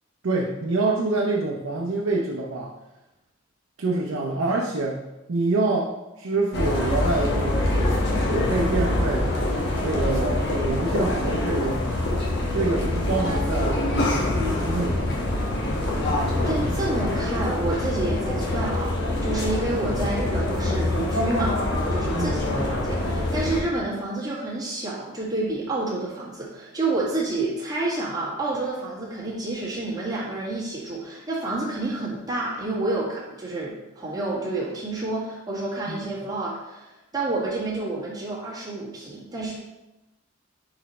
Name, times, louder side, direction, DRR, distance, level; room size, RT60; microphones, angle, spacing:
voice 1, 0.2-2.7 3.8-5.0 5.3-9.4 9.8-11.9 12.5-15.1 22.1-22.6 35.9-36.0, right 2 dB, 85° right, -1 dB, 0.7 m, -26 dB
sound 1, 6.5-23.6, left 1 dB, 55° left, 1.2 m, -25 dB
voice 2, 16.5-39.5, right 2 dB, 20° right, -7 dB, 1.7 m, -29 dB
4.3 x 4.2 x 5.4 m, 1.0 s
head